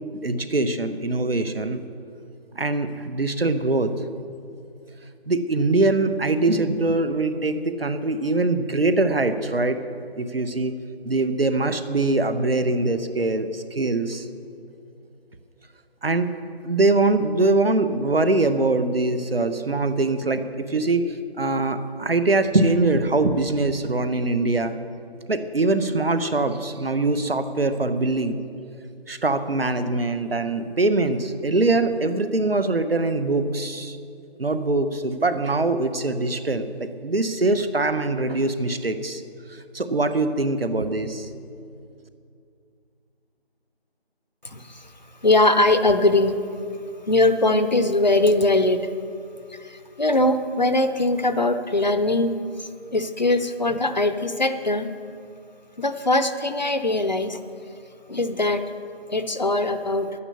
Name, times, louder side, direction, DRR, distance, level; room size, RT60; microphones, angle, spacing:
voice 1, 0.2-1.8 2.5-3.9 5.3-9.8 10.2-10.8 11.0-14.3 16.0-16.3 16.6-24.8 25.3-28.4 29.1-34.0 34.4-39.2 39.5-41.3, right 2 dB, 65° right, 10 dB, 1.0 m, -23 dB
voice 2, 44.4-44.9 45.2-46.3 47.1-48.9 49.5-54.9 55.8-57.4 58.1-58.6 59.1-60.1, left 2 dB, 45° left, 10 dB, 0.7 m, -21 dB
11.0 x 10.0 x 6.8 m, 2.4 s
figure-of-eight pair, 160°, 32 cm